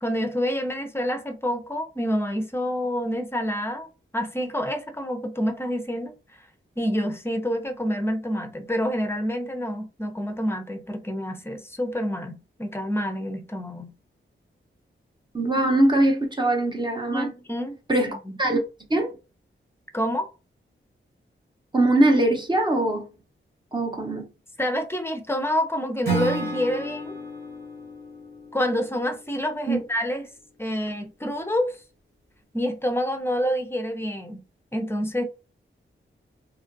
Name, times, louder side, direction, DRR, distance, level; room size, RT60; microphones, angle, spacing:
voice 1, 0.0-3.9 4.1-6.1 6.8-13.9 17.1-17.8 18.3-18.4 19.9-20.3 24.6-27.1 28.5-30.3 30.6-31.7 32.5-34.4 34.7-35.2, equal, 10° left, 0.5 m, -27 dB
voice 2, 15.3-17.3 17.9-18.6 18.9-19.1 21.7-23.0 23.7-24.2 29.7-29.8, right 1 dB, 20° right, 0.7 m, -22 dB
Acoustic guitar / Strum, 26.0-29.2, right 2 dB, 50° right, 1.1 m, -31 dB
2.9 x 2.4 x 2.5 m
wide cardioid pair, 105°, 21 cm